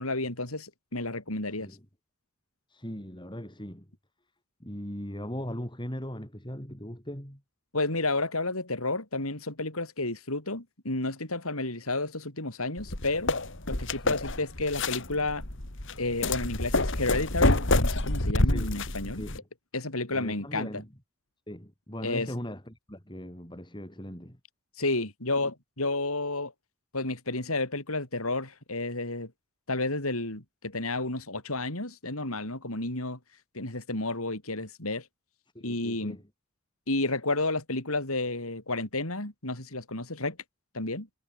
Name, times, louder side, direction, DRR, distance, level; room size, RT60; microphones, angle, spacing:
voice 1, 0.0-1.7 7.7-13.3 13.7-15.4 16.0-19.2 19.7-20.8 22.0-22.3 24.8-26.5 26.9-29.3 29.7-33.2 33.5-35.1 35.6-36.2 36.9-40.4 40.7-41.1, left 2 dB, 85° left, 6.4 m, -31 dB
voice 2, 2.7-3.9 4.6-7.4 14.0-14.2 18.4-18.7 19.2-19.4 20.1-20.9 21.5-24.4 35.5-36.2, equal, 20° left, 7.8 m, -39 dB
sound 1, 12.8-19.4, left 2 dB, 60° left, 3.3 m, -27 dB
head